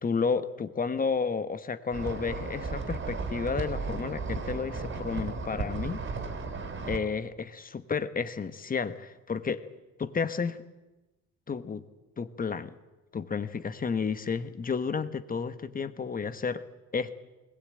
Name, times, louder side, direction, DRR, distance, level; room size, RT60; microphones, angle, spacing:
voice 1, 0.0-6.0 6.9-9.6 10.0-10.6 11.5-11.8 12.2-12.8 13.1-16.6 16.9-17.2, left 5 dB, 30° left, 12 dB, 1.1 m, -31 dB
sound 1, 1.9-7.0, right 4 dB, 45° right, 3.4 m, -35 dB
20.5 x 20.0 x 8.9 m, 1.1 s
cardioid pair, 130°, 29 cm